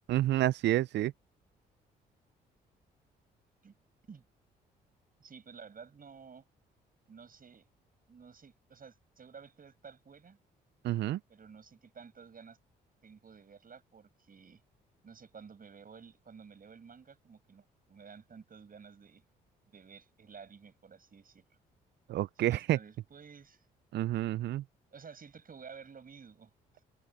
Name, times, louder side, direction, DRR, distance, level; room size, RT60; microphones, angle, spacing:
voice 1, 0.1-1.1 10.8-11.2 22.1-22.8 23.9-24.6, right 14 dB, 60° right, 0.5 m, -29 dB
voice 2, 5.2-6.5 7.1-7.7 8.1-10.4 11.3-12.6 13.0-14.6 15.0-19.2 19.7-21.4 22.4-23.7 24.9-26.5, right 6 dB, 45° right, 7.4 m, -52 dB
hypercardioid pair, 50°, 20 cm